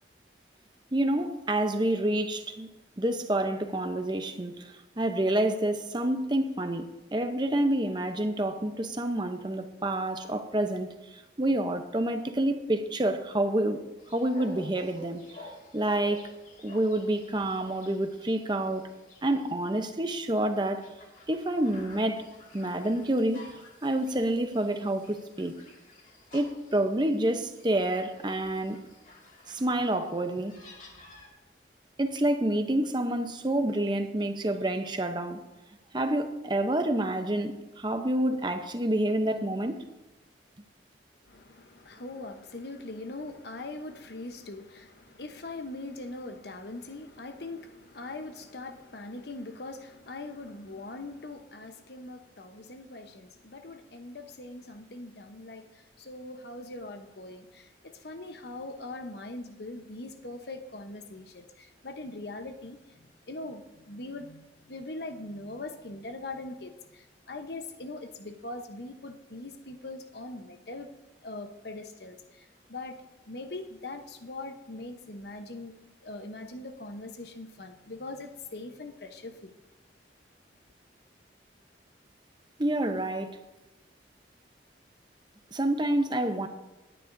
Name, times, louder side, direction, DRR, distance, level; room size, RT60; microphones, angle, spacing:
voice 1, 0.9-2.7 3.0-13.8 14.1-15.2 15.7-16.3 16.6-18.9 19.2-20.9 21.3-22.3 22.5-23.5 23.8-25.6 26.3-28.8 29.5-30.6 32.0-35.4 35.9-39.8 82.6-83.4 85.5-86.5, right 1 dB, 25° right, 0.7 m, -28 dB
sound 1, 14.0-31.3, left 1 dB, 40° left, 2.2 m, -52 dB
voice 2, 41.2-70.9 71.2-75.7 76.0-79.5, left 2 dB, 60° left, 1.0 m, -41 dB
17.5 x 10.0 x 2.7 m
head